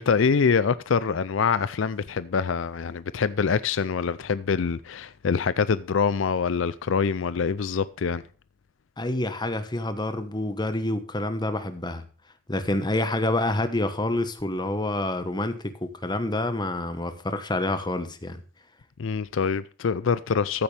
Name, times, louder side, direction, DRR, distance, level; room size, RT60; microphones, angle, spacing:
voice 1, 0.0-8.2 19.0-20.6, left 5 dB, 75° left, 0.5 m, -25 dB
voice 2, 9.0-12.0 12.5-18.4, left 1 dB, 20° left, 1.2 m, -27 dB
14.5 x 8.7 x 3.4 m
head